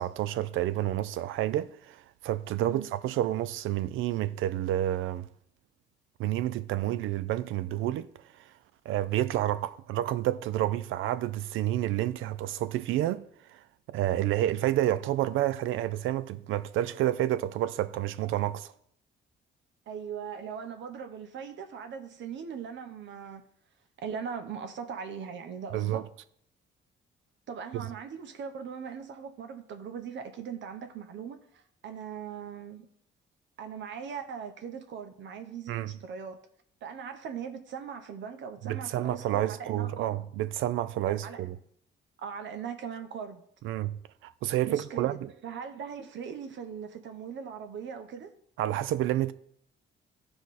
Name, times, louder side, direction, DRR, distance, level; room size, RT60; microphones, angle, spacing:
voice 1, 0.0-5.3 6.2-8.1 8.9-13.6 13.9-18.7 25.7-26.0 27.7-27.9 35.7-35.9 38.6-41.6 43.6-44.0 44.2-45.3 48.6-49.3, right 13 dB, 85° right, 0.5 m, -29 dB
voice 2, 19.9-23.4 24.0-26.0 27.5-32.9 33.6-36.4 36.8-40.3 41.1-41.5 42.2-43.5 44.7-45.2 45.4-48.3, right 7 dB, 70° right, 0.9 m, -40 dB
12.0 x 4.9 x 4.1 m
cardioid pair, 90°, 20 cm